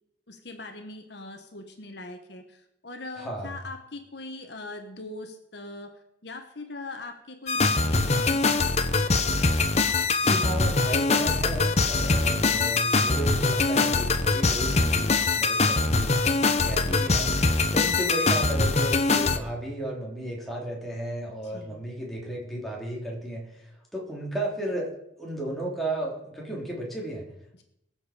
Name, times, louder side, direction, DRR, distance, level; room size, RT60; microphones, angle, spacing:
voice 1, 0.3-8.4 16.8-17.1 17.9-18.1 21.4-21.8, left 2 dB, 60° left, 5 dB, 1.4 m, -41 dB
voice 2, 3.2-3.6 10.2-24.9 25.2-27.2, right 1 dB, ahead, -3 dB, 3.1 m, -34 dB
sound 1, 7.5-19.4, left 3 dB, 35° left, 0.8 m, -23 dB
22.0 x 7.3 x 5.0 m, 0.81 s
head